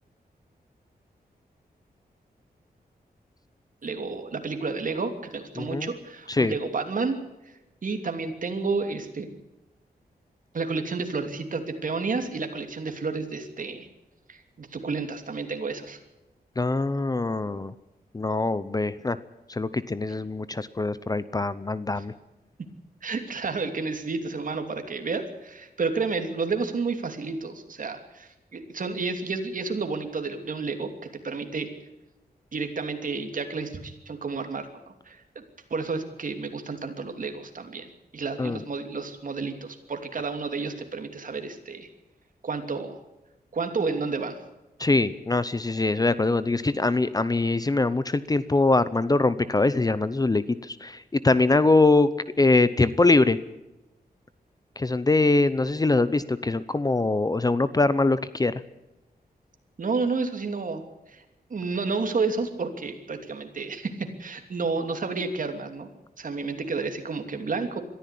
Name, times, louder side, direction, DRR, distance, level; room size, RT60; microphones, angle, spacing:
voice 1, 3.8-7.2 7.5-7.6 7.8-9.3 10.5-13.9 14.3-16.0 22.0-22.1 23.0-30.9 31.2-31.7 32.5-35.4 35.7-41.9 42.4-43.0 43.5-44.4 59.8-60.8 61.1-61.2 61.5-65.9 66.2-67.8, right 4 dB, 55° right, 6 dB, 2.9 m, -31 dB
voice 2, 5.6-5.9 6.3-6.5 16.6-17.7 18.1-19.2 19.5-22.1 38.4-38.6 44.8-52.1 52.4-53.4 54.8-58.5, left 3 dB, 25° left, 15 dB, 0.7 m, -23 dB
22.0 x 14.5 x 8.4 m, 0.99 s
wide cardioid pair, 140°, 16 cm